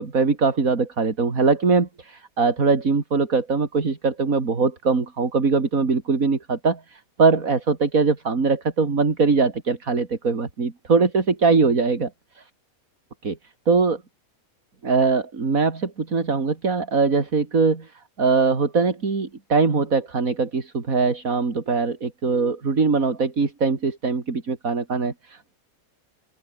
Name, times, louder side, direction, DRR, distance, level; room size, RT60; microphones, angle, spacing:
voice 1, 0.0-12.1 12.4-12.5 13.2-13.4 13.7-14.0 14.8-17.9 18.2-25.6, right 4 dB, 75° right, 3.2 m, -22 dB
open air
omnidirectional pair, 1.5 m